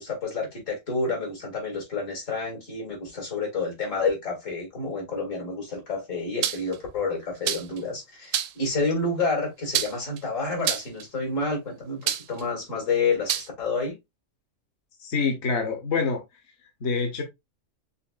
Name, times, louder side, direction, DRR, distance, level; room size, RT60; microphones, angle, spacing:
voice 1, 0.0-14.0, left 3 dB, 80° left, 2.6 m, -29 dB
sound 1, 6.4-6.8 7.5-7.8 8.3-8.7 9.7-10.2 10.6-11.0 12.1-12.4 13.3-13.5, right 10 dB, 75° right, 0.9 m, -27 dB
voice 2, 15.0-16.2 16.8-17.2, left 4 dB, 60° left, 1.1 m, -26 dB
5.6 x 3.7 x 2.3 m
omnidirectional pair, 1.3 m